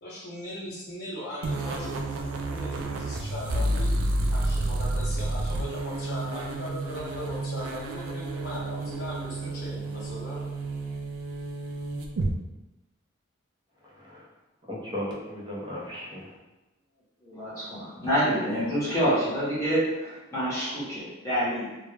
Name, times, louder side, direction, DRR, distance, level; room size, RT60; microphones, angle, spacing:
voice 1, 0.0-2.2 2.5-3.9 4.3-10.5, left 1 dB, 55° left, -10 dB, 0.6 m, -38 dB
sound 1, 1.4-12.3, right 2 dB, 85° right, 0.4 m, -30 dB
voice 2, 13.8-14.3 14.7-16.4, left 1 dB, 20° right, -4 dB, 0.5 m, -36 dB
voice 3, 17.2-21.8, equal, 15° left, -11 dB, 0.8 m, -27 dB
2.3 x 2.0 x 3.1 m, 1.0 s
head